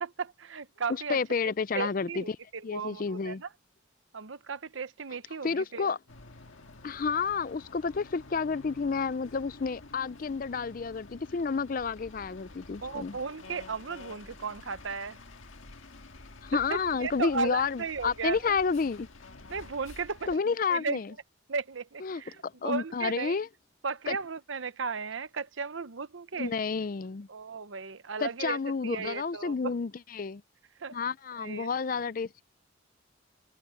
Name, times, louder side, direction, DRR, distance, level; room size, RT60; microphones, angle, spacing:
voice 1, 0.0-1.2 1.7-3.5 4.1-5.9 12.8-15.2 16.5-18.6 19.5-21.0 21.5-23.4 23.8-26.5 27.3-29.7 30.8-31.0 31.4-31.7, right 5 dB, 75° right, 0.8 m, -35 dB
voice 2, 1.1-2.4 2.6-3.4 5.4-6.0 6.8-13.2 16.4-19.1 20.3-21.1 22.0-23.5 24.1-24.2 26.4-27.3 28.2-30.4 30.9-32.4, left 5 dB, 45° left, 0.4 m, -30 dB
sound 1, 6.1-20.4, left 3 dB, 85° left, 1.7 m, -50 dB
head